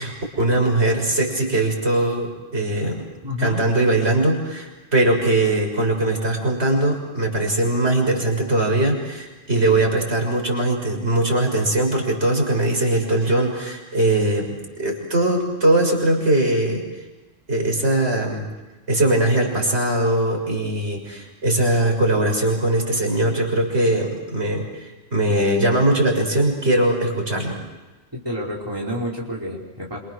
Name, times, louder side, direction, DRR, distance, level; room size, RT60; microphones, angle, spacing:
voice 1, 0.0-3.1 3.4-16.8 17.5-18.5 18.9-27.6, right 1 dB, 60° right, 1 dB, 6.8 m, -21 dB
voice 2, 3.2-3.6 9.5-9.8 28.2-30.0, left 1 dB, 20° right, -4 dB, 5.0 m, -29 dB
29.0 x 26.5 x 6.5 m, 1.2 s
omnidirectional pair, 1.3 m